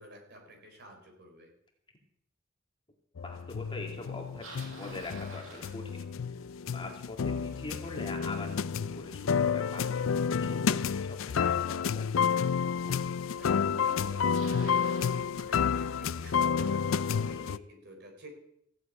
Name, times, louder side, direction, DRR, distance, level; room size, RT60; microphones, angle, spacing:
voice 1, 0.0-1.5 13.4-18.3, equal, 55° right, 3 dB, 4.2 m, -50 dB
sound 1, 3.2-17.6, left 6 dB, 80° left, 0.4 m, -30 dB
voice 2, 3.2-6.3 6.6-12.1 12.8-13.0 17.3-17.5, left 2 dB, 25° left, 1 dB, 2.4 m, -43 dB
Bicycle, 4.0-6.4 11.4-11.5 12.4-12.5 13.5-13.6 13.8-15.3, right 2 dB, 90° right, 6.8 m, -48 dB
15.0 x 8.1 x 8.6 m, 0.75 s
head